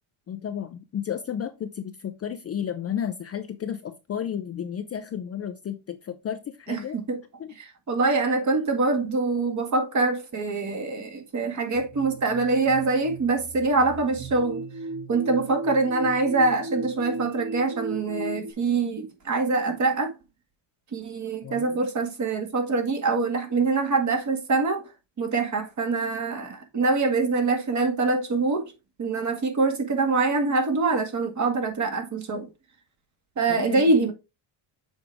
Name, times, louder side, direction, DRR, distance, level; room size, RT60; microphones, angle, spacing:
voice 1, 0.3-7.0 7.4-7.5 21.4-21.8 33.5-33.9, left 9 dB, 30° left, 0.5 m, -32 dB
voice 2, 6.7-7.2 7.6-14.7 15.1-20.1 20.9-24.8 25.2-28.7 29.0-32.5 33.4-34.1, right 3 dB, 35° right, 1.9 m, -24 dB
sound 1, 11.7-18.5, right 2 dB, 55° right, 1.3 m, -36 dB
7.0 x 5.0 x 3.4 m
cardioid pair, 130°, 50 cm